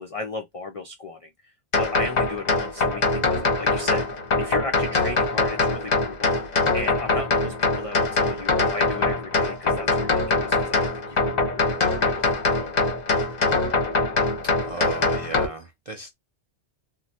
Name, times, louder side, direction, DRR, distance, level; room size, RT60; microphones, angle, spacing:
voice 1, 0.0-12.9, left 2 dB, 65° left, 0.3 m, -36 dB
sound 1, 1.7-15.5, left 3 dB, 45° left, 0.7 m, -23 dB
voice 2, 14.7-16.1, right 3 dB, 50° right, 0.4 m, -34 dB
3.1 x 2.2 x 2.6 m
omnidirectional pair, 1.2 m